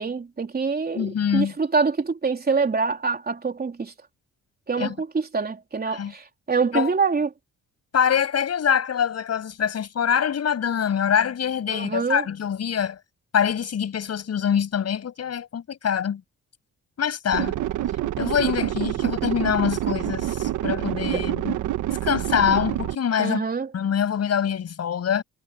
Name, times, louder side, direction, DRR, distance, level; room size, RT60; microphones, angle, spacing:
voice 1, 0.0-3.9 4.7-7.3 11.7-12.2 21.1-21.2 23.2-23.7, right 4 dB, 30° right, 4.1 m, -25 dB
voice 2, 0.9-1.5 4.8-5.0 5.9-6.1 6.7-6.9 7.9-13.0 13.3-16.2 17.0-17.6 18.2-21.6 22.0-23.4 23.7-25.2, left 8 dB, 55° left, 7.5 m, -24 dB
sound 1, 17.3-23.0, right 13 dB, 85° right, 1.5 m, -27 dB
cardioid pair, 90°, 30 cm